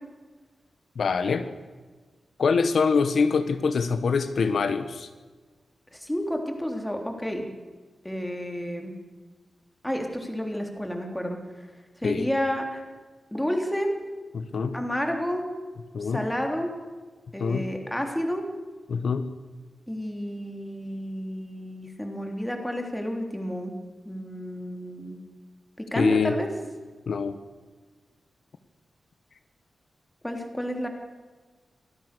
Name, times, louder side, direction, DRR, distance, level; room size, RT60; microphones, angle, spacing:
voice 1, 0.9-1.4 2.4-5.1 12.0-12.3 14.3-14.7 15.9-16.2 17.4-17.7 18.9-19.3 26.0-26.3 27.1-27.4, left 5 dB, 70° left, 9 dB, 1.3 m, -24 dB
voice 2, 5.9-7.5 8.0-8.9 9.8-11.4 12.0-12.8 13.3-14.0 14.7-15.5 16.0-16.7 17.3-18.5 19.9-23.8 24.0-25.2 25.8-26.5 30.2-30.9, equal, 5° left, 3 dB, 3.4 m, -30 dB
25.0 x 17.0 x 6.9 m, 1.4 s
wide cardioid pair, 135°, 0 cm